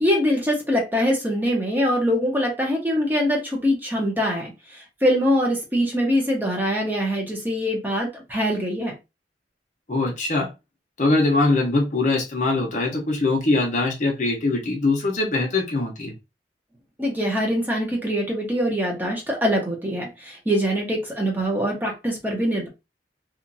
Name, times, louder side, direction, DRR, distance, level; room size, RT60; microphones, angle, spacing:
voice 1, 0.0-8.9 17.0-22.7, equal, 10° right, 0.9 m, -23 dB
voice 2, 9.9-10.5 11.0-16.1, left 2 dB, 45° left, 0.7 m, -22 dB
2.9 x 2.5 x 2.6 m
head